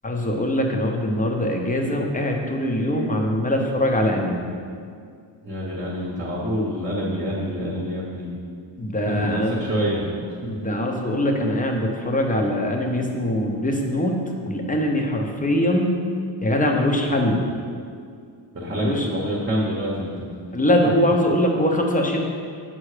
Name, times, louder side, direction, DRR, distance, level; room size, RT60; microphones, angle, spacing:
voice 1, 0.0-4.5 8.8-9.6 10.5-16.0 16.4-17.4 18.7-19.1 20.5-22.2, left 1 dB, 15° left, 2 dB, 0.7 m, -22 dB
voice 2, 5.4-8.3 9.1-10.1 18.5-20.1, equal, 25° right, -4 dB, 0.9 m, -26 dB
7.4 x 5.5 x 4.9 m, 2.2 s
wide cardioid pair, 175°, 47 cm